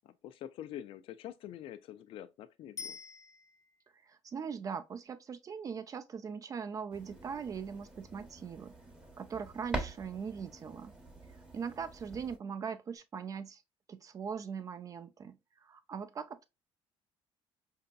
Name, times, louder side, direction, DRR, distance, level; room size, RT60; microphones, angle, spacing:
voice 1, 0.0-3.0, left 11 dB, 65° left, 0.4 m, -46 dB
Bicycle bell, 2.8-3.9 13.0-13.1, left 6 dB, 30° left, 0.7 m, -46 dB
voice 2, 4.0-8.7 9.2-10.9 11.5-13.6 13.9-16.4, right 6 dB, 35° right, 0.4 m, -40 dB
sound 1, 6.9-12.4, right 2 dB, 10° right, 0.9 m, -44 dB
4.9 x 2.7 x 2.2 m
cardioid pair, 120°, 10 cm